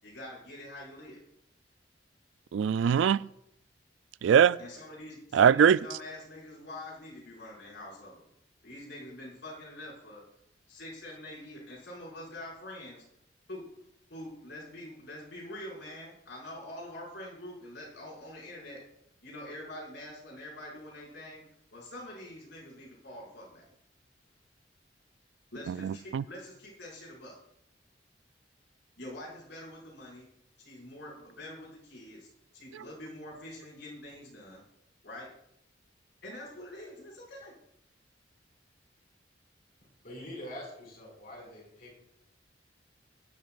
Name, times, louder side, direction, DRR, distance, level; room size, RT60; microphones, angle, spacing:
voice 1, 0.0-1.2 4.6-8.2 8.6-10.2 10.7-13.0 13.5-13.6 14.1-18.8 19.2-21.4 21.7-23.6 25.5-27.4 29.0-30.3 30.6-32.3 32.5-34.6 35.0-35.3 36.2-37.5, left 1 dB, 75° left, -5 dB, 5.9 m, -45 dB
voice 2, 2.5-3.2 4.2-4.6 5.3-5.8 25.7-26.2, right 8 dB, 85° right, 20 dB, 0.3 m, -22 dB
voice 3, 40.0-41.9, equal, 50° left, -2 dB, 5.7 m, -44 dB
17.5 x 12.0 x 2.5 m, 0.77 s
head